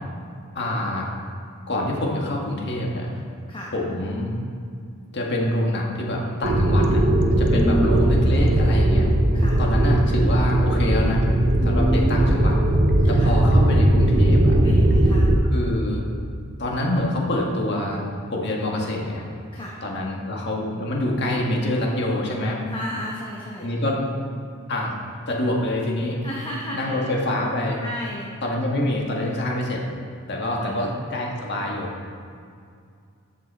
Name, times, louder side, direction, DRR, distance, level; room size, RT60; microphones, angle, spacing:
voice 1, 0.5-1.1 1.7-3.1 3.7-4.4 5.1-7.0 7.3-9.1 9.6-11.2 11.6-12.5 13.1-14.6 15.4-16.0 16.6-18.0 18.3-19.2 19.8-22.6 23.6-24.0 24.7-25.0 25.3-26.2 26.7-27.8 28.4-29.8 30.3-31.9, left 1 dB, 50° left, -1 dB, 1.6 m, -26 dB
sound 1, 6.4-15.4, right 1 dB, 50° right, 0.9 m, -18 dB
voice 2, 7.5-8.3 9.3-9.6 11.6-12.3 13.1-13.4 14.6-15.3 19.5-19.8 22.7-23.6 26.2-27.1 27.8-28.3 30.6-30.8, equal, 25° left, -4 dB, 1.0 m, -31 dB
14.0 x 6.2 x 4.2 m, 2.3 s
head